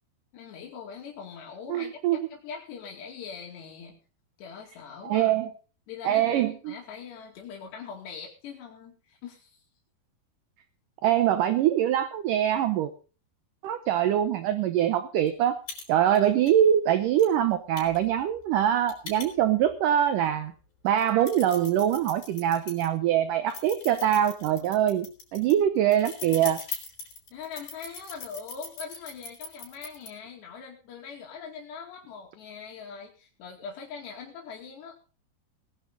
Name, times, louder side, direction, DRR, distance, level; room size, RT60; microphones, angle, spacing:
voice 1, 0.3-4.0 4.4-5.5 5.9-9.6 27.3-34.9, left 6 dB, 80° left, 0 dB, 4.5 m, -42 dB
voice 2, 1.7-2.2 5.0-5.5 6.1-6.7 11.0-12.9 13.6-15.6 15.9-20.5 20.8-26.6, right 10 dB, 75° right, 10 dB, 2.0 m, -23 dB
sound 1, 15.3-15.4 15.7-15.8 16.1-16.5 17.2-17.3 17.8-19.7 20.3-20.4 20.9-22.9 23.5-30.1, left 5 dB, 55° left, 6.8 m, -40 dB
19.5 x 11.0 x 4.0 m, 0.36 s
omnidirectional pair, 4.9 m